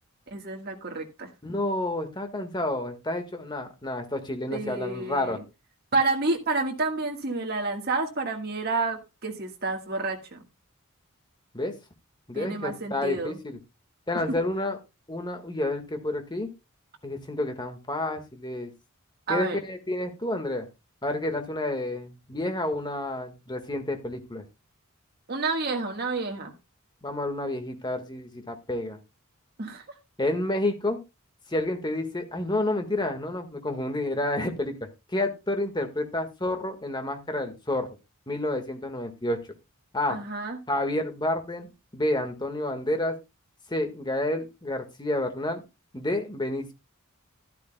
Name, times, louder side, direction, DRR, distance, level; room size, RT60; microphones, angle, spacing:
voice 1, 0.3-1.3 4.5-5.4 5.9-10.4 12.3-13.4 19.3-19.6 25.3-26.5 29.6-29.8 40.1-40.6, right 3 dB, 50° right, 2 dB, 1.5 m, -29 dB
voice 2, 1.4-5.4 11.5-11.7 12.3-13.6 14.1-14.8 15.1-16.5 17.0-18.7 19.3-20.7 21.0-24.4 27.0-29.0 30.2-31.0 31.5-34.7 35.1-37.9 38.3-39.4 39.9-40.2 40.7-41.7 41.9-43.2 43.7-45.6 45.9-46.7, left 1 dB, 20° left, 6 dB, 1.6 m, -29 dB
12.5 x 12.0 x 2.2 m, 0.26 s
head